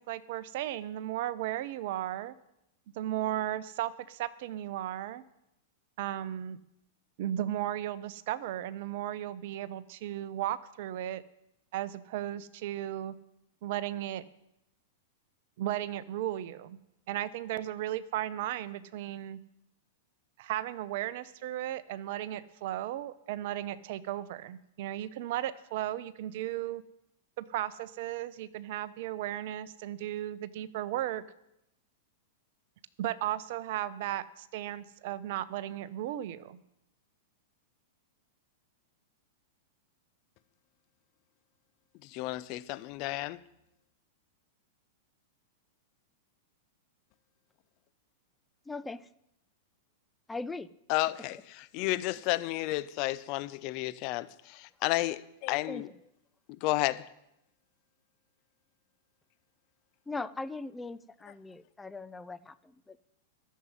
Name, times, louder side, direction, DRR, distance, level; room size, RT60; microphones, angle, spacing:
voice 1, 0.0-2.3 3.0-5.2 6.0-6.6 7.2-11.2 11.7-13.1 13.6-14.2 15.6-16.8 17.1-19.4 20.4-26.8 27.4-31.2 33.0-36.6, right 13 dB, 55° right, 0.8 m, -35 dB
voice 2, 42.0-43.4 50.9-55.9 56.5-57.1, left 18 dB, 45° left, 0.7 m, -32 dB
voice 3, 48.7-49.1 50.3-50.7 55.7-56.0 60.1-63.1, left 3 dB, 10° left, 0.6 m, -40 dB
13.5 x 7.5 x 9.6 m
hypercardioid pair, 100°, 0 cm